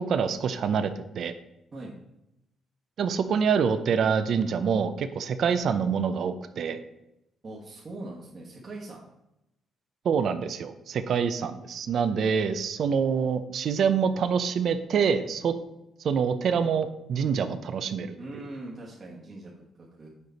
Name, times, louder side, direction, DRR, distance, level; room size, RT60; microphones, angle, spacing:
voice 1, 0.0-1.3 3.0-6.8 10.0-15.5 16.0-18.1, right 6 dB, 65° right, 11 dB, 0.5 m, -26 dB
voice 2, 7.4-9.0 18.2-20.1, right 2 dB, 40° right, -5 dB, 1.3 m, -41 dB
6.5 x 5.0 x 4.0 m, 0.87 s
cardioid pair, 90°, 0 cm